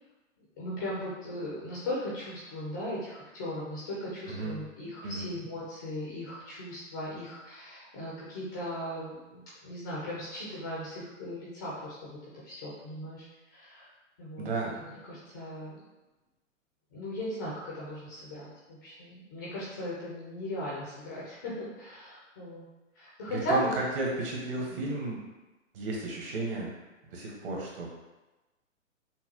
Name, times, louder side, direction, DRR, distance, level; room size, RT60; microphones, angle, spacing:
voice 1, 0.6-13.2 13.5-13.9 14.2-15.8 16.9-22.6 23.0-23.7, equal, 15° left, -6 dB, 0.4 m, -37 dB
voice 2, 4.3-4.6 5.0-5.3 14.4-14.8 23.3-25.2 25.7-26.8 27.1-28.0, right 2 dB, 45° right, -2 dB, 1.1 m, -33 dB
5.8 x 2.2 x 2.8 m, 1.1 s
figure-of-eight pair, 120°, 40 cm